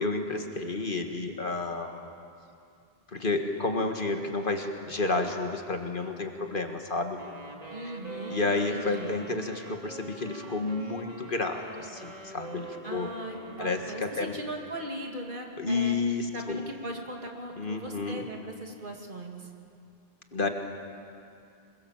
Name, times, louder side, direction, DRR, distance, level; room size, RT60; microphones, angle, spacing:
voice 1, 0.0-2.1 3.1-7.2 8.3-13.1 13.6-14.4 15.6-16.6 17.6-18.3 20.3-20.5, left 3 dB, 55° left, 4 dB, 1.9 m, -30 dB
Wind instrument woodwind instrument, 7.2-14.6, right 2 dB, 40° right, 2.5 m, -44 dB
voice 2, 7.7-9.1 12.8-16.0 16.3-19.5, right 1 dB, 55° right, 1 dB, 2.7 m, -39 dB
26.0 x 22.5 x 7.3 m, 2.5 s
omnidirectional pair, 1.0 m